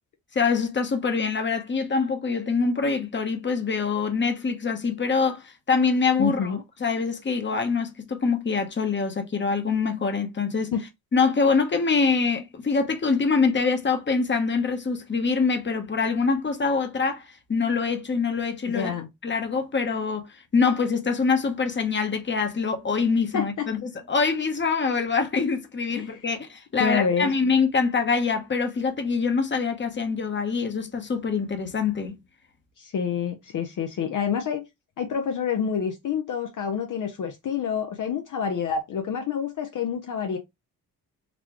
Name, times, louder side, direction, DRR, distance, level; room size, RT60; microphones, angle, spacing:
voice 1, 0.3-10.7 11.1-18.9 19.2-32.2, left 4 dB, 30° left, 1.0 m, -24 dB
voice 2, 6.2-6.6 10.7-10.8 18.7-19.1 23.3-23.7 25.9-26.2 26.8-27.3 32.8-34.6 35.0-40.4, left 7 dB, 55° left, 0.7 m, -27 dB
4.1 x 2.2 x 2.9 m
cardioid pair, 70°, 36 cm